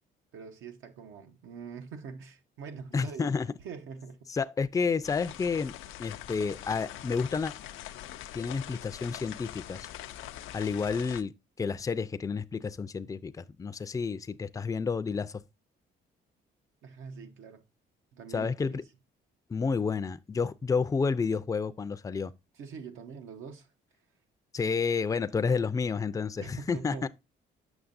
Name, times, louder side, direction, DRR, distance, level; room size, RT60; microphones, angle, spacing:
voice 1, 0.3-3.3 3.6-4.3 16.8-17.6 18.1-18.8 22.5-23.7 26.4-27.1, right 6 dB, 85° right, 1.0 m, -44 dB
voice 2, 2.9-3.5 4.3-7.5 8.3-9.9 10.5-11.3 11.6-15.4 18.3-18.8 19.5-22.3 24.5-27.1, left 5 dB, 15° left, 0.4 m, -30 dB
sound 1, 5.0-11.2, left 12 dB, 90° left, 0.4 m, -43 dB
7.1 x 6.0 x 2.5 m
cardioid pair, 90°, 20 cm